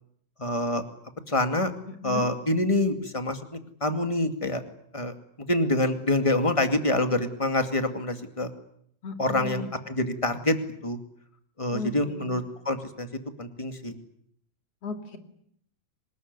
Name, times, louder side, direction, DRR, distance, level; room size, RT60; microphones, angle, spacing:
voice 1, 0.4-0.8 1.3-1.7 2.0-3.4 3.8-4.6 4.9-5.1 5.5-8.5 9.2-10.6 10.8-11.0 11.6-13.1 13.4-13.9, left 1 dB, 10° left, 7 dB, 1.8 m, -26 dB
voice 2, 1.9-2.3 9.0-9.7 11.7-12.4 14.8-15.2, left 4 dB, 55° left, 6 dB, 3.4 m, -36 dB
25.5 x 20.5 x 9.6 m, 0.70 s
omnidirectional pair, 3.4 m